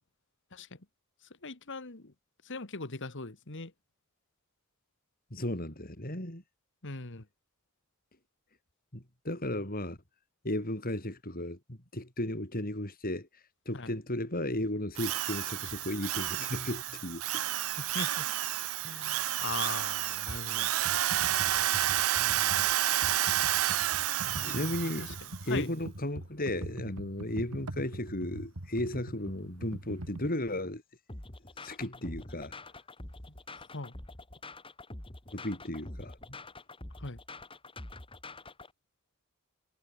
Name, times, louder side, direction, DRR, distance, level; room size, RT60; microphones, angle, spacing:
voice 1, 1.4-2.1 2.5-3.7 6.8-7.2 13.7-13.9 17.8-18.3 18.8-20.7 22.2-22.7 24.2-25.1 25.5-25.7 33.7-33.9 37.0-37.2, left 3 dB, 55° left, 2.0 m, -40 dB
voice 2, 5.3-6.4 8.9-10.0 10.4-17.2 24.4-25.2 25.4-30.8 31.6-32.5 35.3-36.4, left 1 dB, 40° left, 5.9 m, -35 dB
Drill, 15.0-25.4, right 13 dB, 65° right, 0.6 m, -30 dB
Computer keyboard, 20.8-30.3, right 1 dB, 85° right, 2.9 m, -43 dB
sound 1, 31.1-38.7, left 2 dB, 25° left, 2.7 m, -46 dB
head